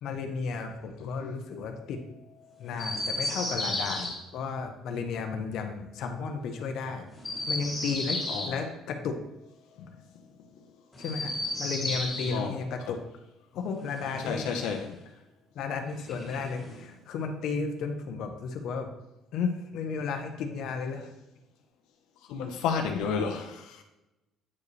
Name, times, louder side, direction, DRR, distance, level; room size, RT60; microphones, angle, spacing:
voice 1, 0.0-2.0 2.6-7.0 7.5-9.2 11.0-13.0 13.5-14.5 15.5-18.9 19.3-21.1, left 5 dB, 60° left, 4 dB, 0.8 m, -33 dB
Chirp tweet, 2.7-4.1 7.1-8.5 10.9-12.4 13.8-14.9 16.0-16.9, left 1 dB, 10° left, 2.5 m, -34 dB
voice 2, 14.3-15.0 22.3-23.8, left 6 dB, 90° left, 4 dB, 0.8 m, -31 dB
8.4 x 4.8 x 3.2 m, 0.95 s
cardioid pair, 155°, 0 cm